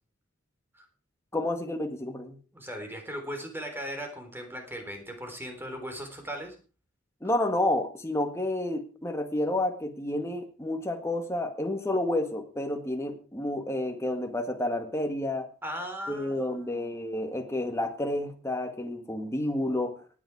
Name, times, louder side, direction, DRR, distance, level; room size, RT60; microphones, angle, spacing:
voice 1, 1.3-2.4 7.2-15.5 16.1-19.9, left 1 dB, 15° left, 5 dB, 1.9 m, -30 dB
voice 2, 2.5-6.6 15.6-16.8, equal, 10° right, 4 dB, 3.9 m, -38 dB
18.0 x 9.9 x 4.8 m, 0.36 s
head